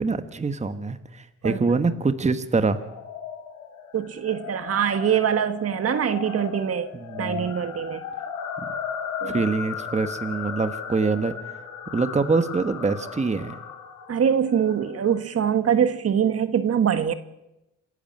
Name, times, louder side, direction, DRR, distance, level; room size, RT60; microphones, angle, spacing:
voice 1, 0.0-2.8 6.9-7.5 8.6-8.7 9.2-11.3 11.9-13.6, right 4 dB, 25° right, 1.4 m, -25 dB
sound 1, 2.6-15.0, left 7 dB, 90° left, 4.5 m, -36 dB
voice 2, 3.9-6.9 7.2-8.0 9.2-9.4 14.1-17.1, right 8 dB, 50° right, 1.6 m, -23 dB
27.5 x 11.5 x 8.8 m
cardioid pair, 90°, 30 cm